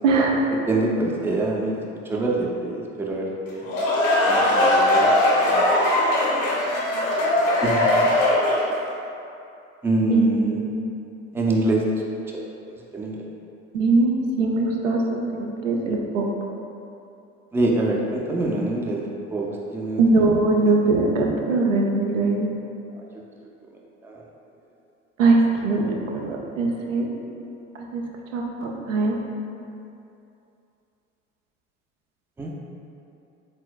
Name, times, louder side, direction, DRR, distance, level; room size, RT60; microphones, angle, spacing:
voice 1, 0.0-0.5 10.1-10.9 13.7-16.3 20.0-22.5 25.2-27.1 27.9-28.0 28.3-29.2, right 3 dB, 80° right, 0 dB, 0.5 m, -21 dB
voice 2, 0.7-1.8 2.1-3.6 4.2-5.1 5.4-5.6 7.6-8.0 9.8-10.6 11.3-12.0 12.3-12.4 12.7-13.2 17.5-20.0 23.0-23.1 24.0-24.2 32.4-32.5, right 2 dB, 5° right, -2 dB, 0.4 m, -25 dB
sound 1, 3.5-8.8, left 1 dB, 65° left, 1.1 m, -20 dB
4.3 x 3.8 x 2.2 m, 2.7 s
figure-of-eight pair, 60°, 38 cm